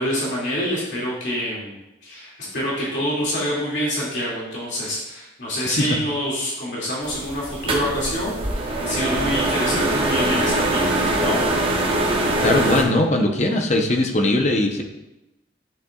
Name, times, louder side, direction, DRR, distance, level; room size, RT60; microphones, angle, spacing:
voice 1, 0.0-11.5, equal, 65° left, -6 dB, 2.4 m, -26 dB
voice 2, 5.7-6.0 12.4-14.8, left 1 dB, 35° left, 3 dB, 0.8 m, -20 dB
sound 1, 7.0-12.8, right 1 dB, 30° right, 0.9 m, -22 dB
10.5 x 6.6 x 2.4 m, 0.95 s
head